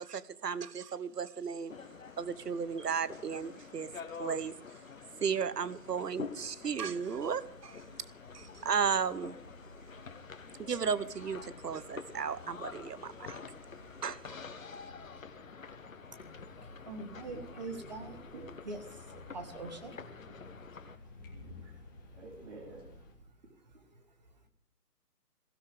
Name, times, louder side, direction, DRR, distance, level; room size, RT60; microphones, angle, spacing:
voice 1, 0.0-1.7 2.2-3.9 4.2-4.5 5.2-7.8 8.3-9.4 10.6-13.4 14.0-14.4, right 6 dB, 75° right, 1.1 m, -34 dB
sound 1, 1.7-21.0, left 5 dB, 55° left, 1.3 m, -48 dB
sound 2, 5.7-23.1, left 2 dB, 15° left, 1.5 m, -55 dB
voice 2, 16.9-18.2 18.6-18.8 19.3-20.0, right 3 dB, 25° right, 1.4 m, -42 dB
voice 3, 17.7-18.5 20.0-20.1 21.6-21.7 22.1-22.9, right 3 dB, 45° right, 4.0 m, -50 dB
22.5 x 16.5 x 3.6 m
hypercardioid pair, 165°, 48 cm